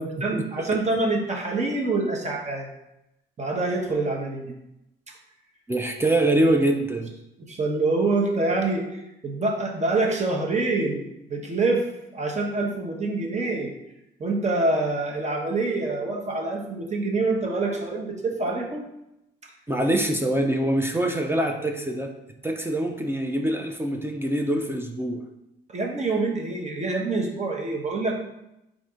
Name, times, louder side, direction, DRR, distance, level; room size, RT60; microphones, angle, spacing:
voice 1, 0.2-2.7 3.4-4.5 5.1-5.2 7.4-11.0 11.3-13.7 14.2-18.9 19.4-19.5 25.7-28.2, right 3 dB, 35° right, 0 dB, 1.0 m, -26 dB
voice 2, 5.7-7.1 19.7-22.1 22.4-25.2, right 1 dB, 10° right, 3 dB, 0.5 m, -24 dB
4.1 x 2.6 x 4.9 m, 0.87 s
cardioid pair, 90°, 20 cm